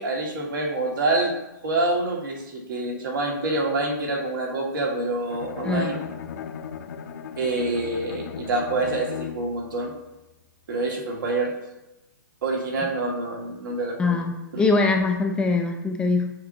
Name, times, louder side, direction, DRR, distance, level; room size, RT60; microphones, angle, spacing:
voice 1, 0.0-1.3 1.6-6.0 7.4-9.9 10.7-11.5 12.4-14.2 14.5-14.6, right 2 dB, 75° right, -2 dB, 2.2 m, -26 dB
Bowed string instrument, 5.3-9.7, left 8 dB, 55° left, 0.6 m, -37 dB
voice 2, 14.0-16.3, left 3 dB, 10° left, 3 dB, 0.4 m, -22 dB
6.7 x 5.9 x 2.9 m, 0.94 s
hypercardioid pair, 155°, 11 cm